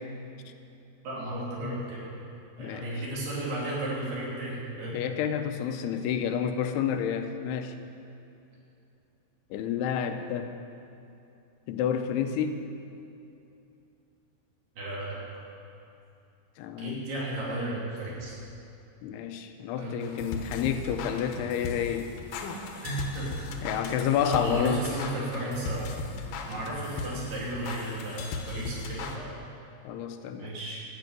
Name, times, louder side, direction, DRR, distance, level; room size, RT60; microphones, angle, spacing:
voice 1, 1.0-2.1 2.6-5.0 14.8-15.2 16.8-18.4 19.8-20.0 22.8-23.5 24.2-25.9 26.5-29.4 30.4-30.8, right 1 dB, 75° right, -6 dB, 4.8 m, -34 dB
voice 2, 4.9-7.7 9.5-10.5 11.7-12.7 16.6-17.0 19.0-22.1 23.6-24.9 29.9-30.5, left 8 dB, 90° left, 7 dB, 2.7 m, -29 dB
sound 1, 20.0-29.2, left 4 dB, 70° left, 2.2 m, -38 dB
12.0 x 6.5 x 9.1 m, 2.7 s
omnidirectional pair, 4.7 m